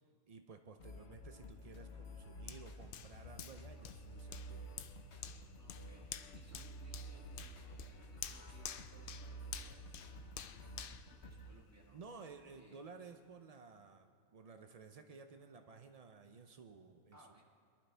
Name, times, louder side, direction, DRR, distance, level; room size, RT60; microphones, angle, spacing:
voice 1, 0.3-4.7 11.9-17.2, right 4 dB, 70° right, 6 dB, 0.3 m, -55 dB
sound 1, 0.8-11.5, right 1 dB, 55° left, 1.4 m, -51 dB
Hands, 2.5-12.0 12.5-12.6, left 9 dB, 70° left, 0.5 m, -50 dB
voice 2, 5.6-12.0 12.6-12.8 17.1-17.4, right 1 dB, 10° right, -1 dB, 1.6 m, -65 dB
23.0 x 12.0 x 3.4 m, 2.4 s
omnidirectional pair, 1.5 m